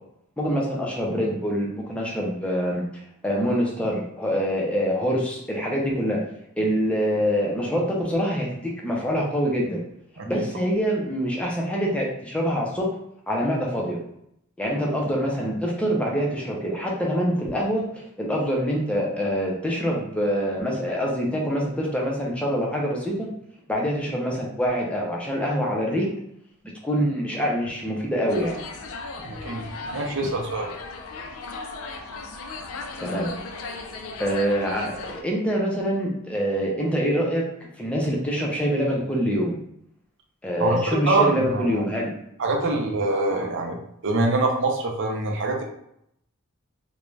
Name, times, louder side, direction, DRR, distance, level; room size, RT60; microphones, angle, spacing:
voice 1, 0.4-6.2 6.6-9.8 10.3-12.9 13.3-14.0 14.6-23.3 23.7-26.1 26.8-28.6 33.0-33.3 34.2-37.4 37.8-39.6 40.4-42.1, equal, 5° left, -2 dB, 0.5 m, -25 dB
sound 1, 28.3-35.2, left 3 dB, 70° left, 0.4 m, -36 dB
voice 2, 29.2-29.6 29.9-30.7 40.6-41.8 42.4-43.8 44.0-45.6, right 2 dB, 60° right, 1 dB, 0.5 m, -24 dB
2.4 x 2.2 x 3.1 m, 0.75 s
head